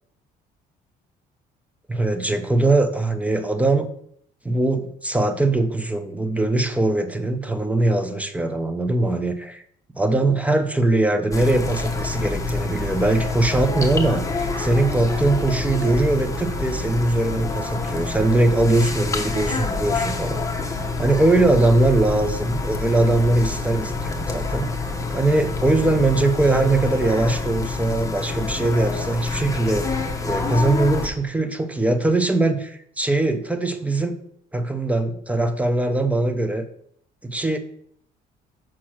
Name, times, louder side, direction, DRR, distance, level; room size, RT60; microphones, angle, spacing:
voice 1, 1.9-3.9 4.4-9.6 10.0-20.4 21.0-24.7 25.1-34.1 34.5-36.7 37.2-37.6, right 2 dB, 10° right, 9 dB, 0.7 m, -21 dB
sound 1, 11.3-31.1, left 3 dB, 20° left, 1.1 m, -27 dB
6.0 x 4.2 x 6.3 m, 0.67 s
cardioid pair, 110°, 17 cm